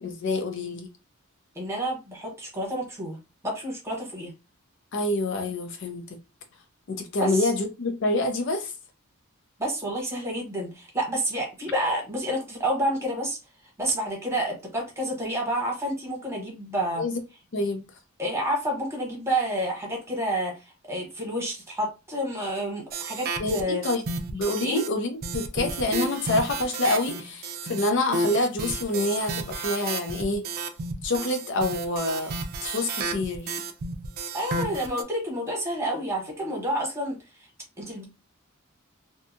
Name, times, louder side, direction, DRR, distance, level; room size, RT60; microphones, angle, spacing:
voice 1, 0.0-0.9 4.9-6.0 6.9-8.7 17.0-17.1 17.5-17.8 23.4-23.6 23.8-24.0 24.3-27.4 27.7-30.5 31.0-32.3 32.6-33.5, left 2 dB, 60° left, 0.5 m, -27 dB
voice 2, 1.5-3.2 3.4-4.3 7.2-7.5 9.6-13.4 13.8-17.0 18.2-23.8 24.6-24.8 34.3-37.2 37.8-38.0, right 1 dB, 10° right, 1.0 m, -29 dB
sound 1, 22.9-24.9 25.2-35.0, right 3 dB, 45° right, 0.4 m, -32 dB
2.7 x 2.2 x 2.6 m
head